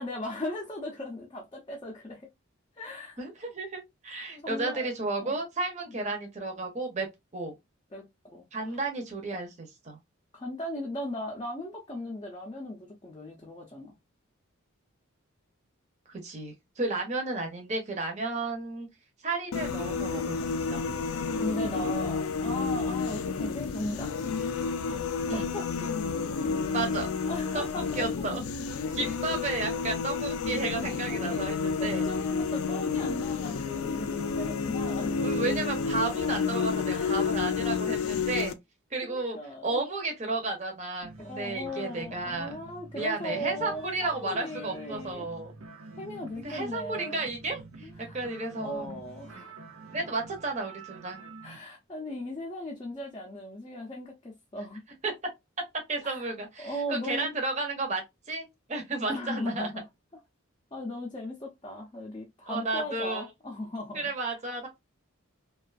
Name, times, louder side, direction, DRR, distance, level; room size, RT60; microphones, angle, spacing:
voice 1, 0.0-2.3 2.8-3.2 4.4-4.9 5.2-5.4 5.9-6.0 7.9-8.8 10.3-14.0 20.4-20.5 21.4-24.1 25.3-26.0 27.3-28.1 31.1-35.2 36.9-37.5 39.0-39.8 41.2-45.2 46.0-47.2 47.8-48.2 48.6-49.6 51.4-54.8 56.0-56.3 56.6-57.3 59.0-59.9 60.7-64.1, left 1 dB, 25° left, 0.5 m, -38 dB
voice 2, 3.2-7.1 7.3-7.5 8.5-10.0 16.1-18.9 19.2-20.4 20.7-20.8 25.3-25.5 26.7-27.1 27.5-27.6 28.0-28.4 28.9-32.0 35.2-38.5 38.9-42.6 42.9-45.5 46.4-49.0 49.4-49.5 49.9-51.2 55.0-55.1 55.9-58.0 58.3-59.7 62.5-63.2 63.9-64.7, right 3 dB, 35° right, 0.7 m, -33 dB
sound 1, 19.5-38.5, left 5 dB, 80° left, 0.4 m, -30 dB
sound 2, 41.0-51.6, right 3 dB, 80° right, 0.6 m, -47 dB
2.4 x 2.3 x 2.4 m
head